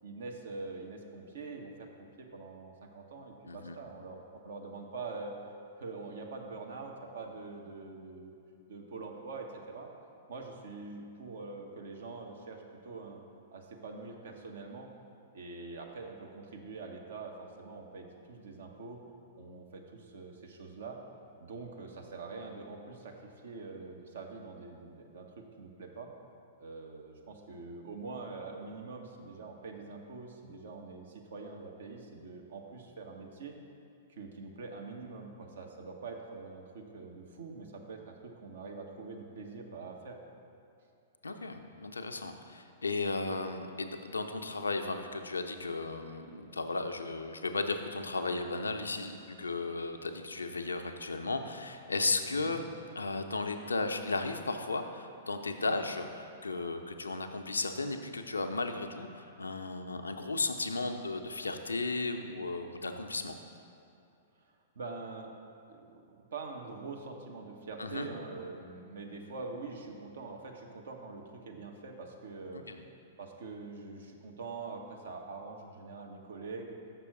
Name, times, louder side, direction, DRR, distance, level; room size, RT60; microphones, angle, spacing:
voice 1, 0.0-5.4 5.8-8.3 8.7-9.9 10.3-13.2 13.5-14.9 15.3-19.0 19.4-21.0 21.4-26.1 26.6-33.5 34.1-40.2 52.3-52.6 64.7-65.3 65.7-72.6 73.2-76.8, right 3 dB, 65° right, 2 dB, 0.9 m, -44 dB
voice 2, 3.5-3.8 41.2-52.7 53.0-63.4 67.8-68.1 72.5-72.8, left 3 dB, 85° left, 6 dB, 0.5 m, -35 dB
6.6 x 6.0 x 4.7 m, 2.6 s
figure-of-eight pair, 105°, 0 cm